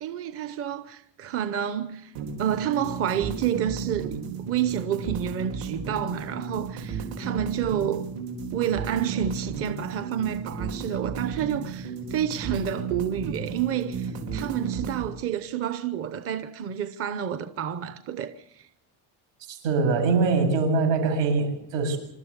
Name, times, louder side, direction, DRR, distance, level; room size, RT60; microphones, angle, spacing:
voice 1, 0.0-2.1 2.4-4.2 4.5-8.1 8.5-18.7, right 9 dB, 35° right, 0.8 m, -29 dB
sound 1, 2.2-15.1, right 5 dB, 65° right, 4.3 m, -34 dB
voice 2, 19.5-22.0, right 4 dB, 85° right, 7.7 m, -23 dB
26.5 x 13.0 x 8.2 m
cardioid pair, 175°, 42 cm